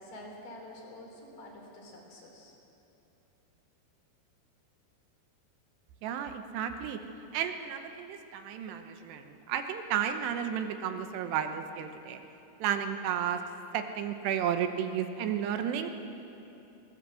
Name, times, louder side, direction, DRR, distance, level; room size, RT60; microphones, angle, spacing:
voice 1, 0.0-2.6, left 1 dB, 55° left, -1 dB, 5.0 m, -48 dB
voice 2, 6.0-7.0 7.3-12.2 12.6-13.4 13.7-15.9, right 9 dB, 85° right, 7 dB, 3.2 m, -32 dB
20.0 x 18.5 x 7.7 m, 2.8 s
omnidirectional pair, 4.8 m